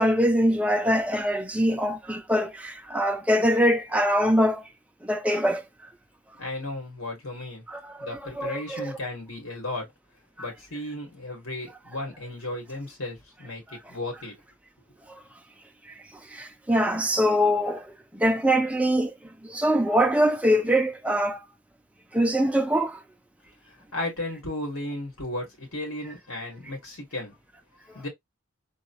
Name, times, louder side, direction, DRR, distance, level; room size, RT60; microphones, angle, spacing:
voice 1, 0.0-4.6 5.0-5.6 7.7-8.9 16.3-17.8 18.1-19.1 19.4-21.4 22.1-23.0, equal, 5° right, 0.5 m, -23 dB
voice 2, 6.4-7.6 8.0-9.9 10.4-14.3 23.9-27.3 27.9-28.1, left 1 dB, 70° left, 2.2 m, -34 dB
3.9 x 2.3 x 2.8 m
head